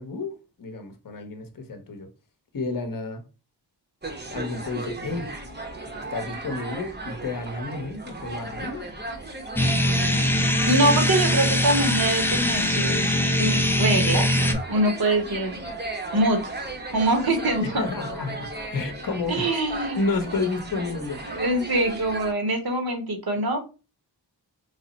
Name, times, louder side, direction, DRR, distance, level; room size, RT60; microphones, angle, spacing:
voice 1, 0.0-2.1 2.5-3.2 4.3-5.3 6.1-8.9 17.6-19.5 20.0-21.4, left 3 dB, 50° left, 0.7 m, -31 dB
sound 1, 4.0-22.3, right 2 dB, 25° right, 0.7 m, -36 dB
sound 2, 9.6-14.5, left 1 dB, 5° left, 0.4 m, -22 dB
voice 2, 10.7-14.3 14.7-15.6 16.1-16.5 16.9-17.9 19.3-20.0 21.3-23.6, right 1 dB, 55° right, 1.0 m, -24 dB
3.3 x 2.0 x 3.9 m
wide cardioid pair, 80°, 44 cm